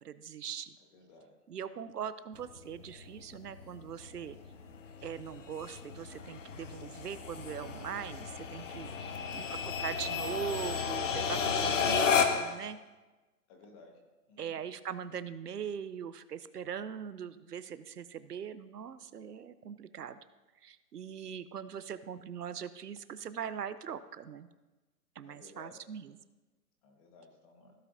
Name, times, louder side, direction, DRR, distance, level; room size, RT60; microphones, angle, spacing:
voice 1, 0.0-0.8 1.5-4.4 5.0-12.8 14.4-20.2 20.6-24.5 25.2-26.2, right 8 dB, 90° right, 14 dB, 0.8 m, -41 dB
voice 2, 0.9-1.4 9.0-9.3 13.5-14.0 14.3-14.6 21.2-21.3 25.2-25.8 26.8-27.7, left 3 dB, 20° left, 2 dB, 1.4 m, -57 dB
sound 1, 2.4-12.6, left 6 dB, 55° left, 1.1 m, -33 dB
16.0 x 7.5 x 2.7 m, 1.2 s
hypercardioid pair, 150°, 46 cm